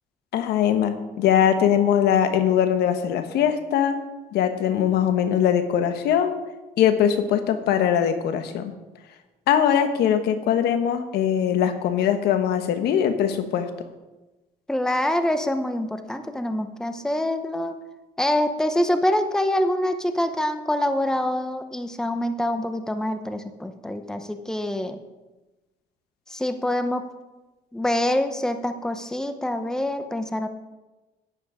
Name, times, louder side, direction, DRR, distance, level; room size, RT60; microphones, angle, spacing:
voice 1, 0.3-4.0 4.3-6.4 6.8-8.7 9.5-13.7, left 9 dB, 75° left, 9 dB, 1.2 m, -21 dB
voice 2, 14.7-17.7 18.2-25.0 26.3-27.1 27.7-30.5, left 1 dB, 5° left, 8 dB, 0.8 m, -25 dB
11.0 x 9.7 x 4.9 m, 1.1 s
cardioid pair, 110°, 17 cm